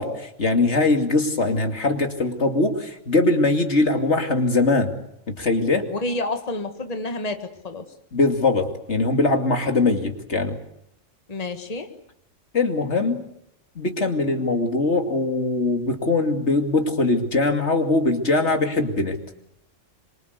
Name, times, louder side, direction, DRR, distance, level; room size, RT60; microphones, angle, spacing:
voice 1, 0.0-4.9 5.3-5.9 8.1-10.6 12.5-13.2 13.8-19.2, left 2 dB, 60° left, 5 dB, 2.9 m, -21 dB
voice 2, 5.9-7.9 11.3-11.9, left 2 dB, 30° left, 7 dB, 1.8 m, -29 dB
25.5 x 24.0 x 8.2 m, 0.75 s
omnidirectional pair, 1.3 m